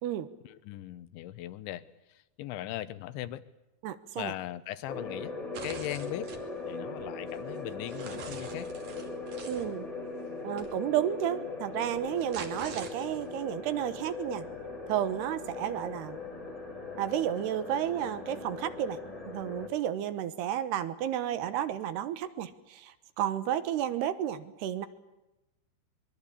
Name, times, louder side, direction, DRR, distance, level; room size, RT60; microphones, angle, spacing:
voice 1, 0.4-3.4 4.2-5.3 5.6-6.4 6.7-8.7, left 13 dB, 80° left, 14 dB, 3.4 m, -39 dB
voice 2, 3.8-4.3 9.4-9.9 10.4-14.5 14.9-16.2 16.9-19.0 19.3-24.9, right 10 dB, 70° right, 13 dB, 3.0 m, -32 dB
sound 1, 4.9-19.7, left 3 dB, 10° left, 2.6 m, -40 dB
sound 2, 5.5-6.4 7.0-9.7 10.6-10.7 11.9-13.4, right 5 dB, 45° right, 3.5 m, -45 dB
25.0 x 23.0 x 8.6 m, 0.97 s
omnidirectional pair, 5.3 m